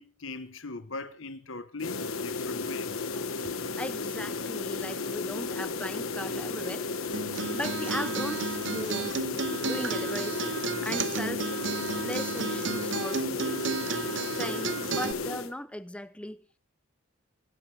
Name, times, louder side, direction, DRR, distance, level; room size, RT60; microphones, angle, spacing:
voice 1, 0.0-2.9, left 3 dB, 70° left, 1.2 m, -40 dB
sound 1, 1.8-15.5, left 4 dB, 85° left, 1.4 m, -34 dB
voice 2, 3.4-6.9 7.5-9.2 9.6-10.4 10.8-11.5 12.0-13.2 14.4-16.4, left 1 dB, 5° left, 0.7 m, -38 dB
Acoustic guitar, 7.1-15.1, right 5 dB, 60° right, 0.8 m, -33 dB
24.5 x 12.5 x 3.4 m
head